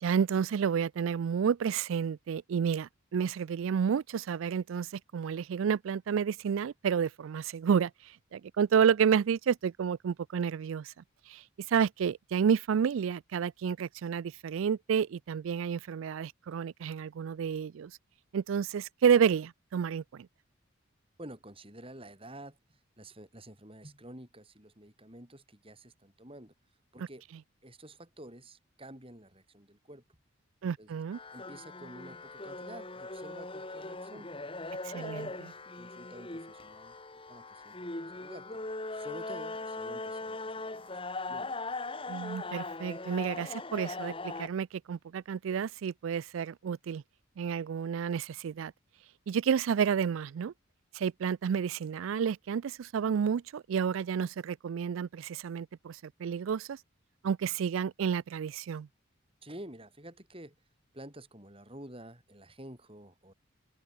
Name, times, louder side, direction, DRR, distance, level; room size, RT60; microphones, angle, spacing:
voice 1, 0.0-7.9 8.3-10.9 11.3-11.4 11.7-17.9 18.3-20.3 30.6-31.2 34.8-35.5 42.1-47.0 47.4-48.7 49.3-50.5 50.9-56.8 57.2-58.9, right 7 dB, 75° right, 0.3 m, -30 dB
voice 2, 21.2-22.6 23.0-26.5 26.9-27.2 27.6-30.0 30.8-30.9 31.3-34.3 34.9-35.4 35.7-37.0 37.3-38.5 38.9-40.8 41.2-41.6 59.4-60.6 60.9-63.3, right 1 dB, 25° right, 6.9 m, -49 dB
sound 1, 31.1-44.5, left 2 dB, 25° left, 2.0 m, -40 dB
open air
head